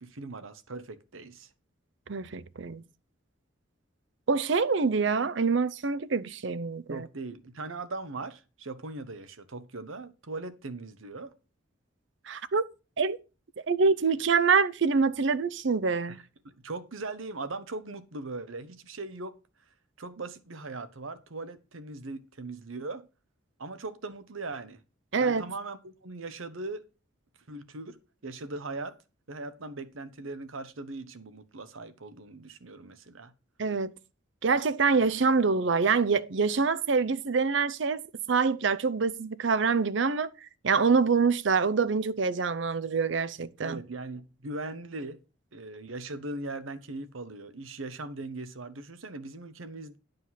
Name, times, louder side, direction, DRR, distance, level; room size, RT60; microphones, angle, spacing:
voice 1, 0.0-1.5 6.9-11.3 16.1-19.3 20.0-23.1 23.6-24.8 25.2-26.8 27.5-28.0 28.2-28.9 29.3-33.3 43.6-45.2 45.5-50.0, right 2 dB, 85° right, 1.0 m, -39 dB
voice 2, 2.1-2.8 4.3-7.1 12.3-12.6 13.0-13.2 13.7-16.2 25.1-25.4 33.6-33.9 34.4-40.3 40.6-43.8, right 5 dB, 65° right, 0.6 m, -25 dB
11.0 x 5.2 x 5.7 m
head